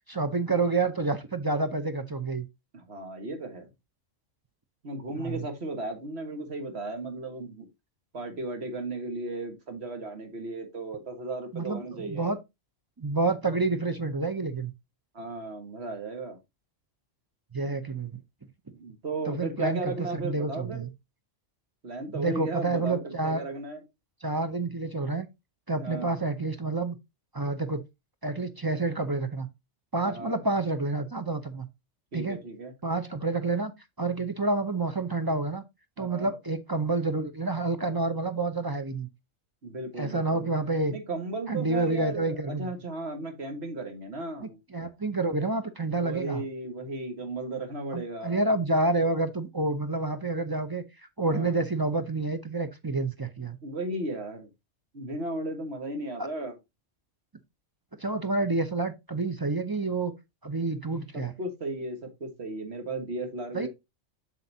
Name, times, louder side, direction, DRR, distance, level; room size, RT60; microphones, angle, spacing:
voice 1, 0.1-2.5 5.1-5.4 11.5-12.4 13.0-14.7 17.5-18.2 19.3-20.9 22.1-23.4 24.2-25.3 25.7-27.0 27.3-27.8 28.2-29.5 29.9-31.7 32.1-32.4 32.8-33.7 34.0-35.6 36.0-39.1 40.0-40.9 41.5-42.7 44.4-46.4 47.9-50.8 51.2-53.6 56.2-56.3 58.0-60.1 60.4-61.3 63.5-63.7, right 3 dB, 25° right, 0.6 m, -28 dB
voice 2, 2.7-3.7 4.8-7.7 8.1-12.4 15.2-16.4 18.7-20.9 21.8-23.8 25.7-26.2 30.0-30.4 32.1-32.7 36.0-36.3 39.6-40.5 40.9-44.6 46.0-48.5 51.2-51.5 53.6-54.5 54.9-56.6 61.1-63.7, right 2 dB, 60° right, 1.8 m, -35 dB
7.6 x 5.8 x 2.7 m
omnidirectional pair, 1.2 m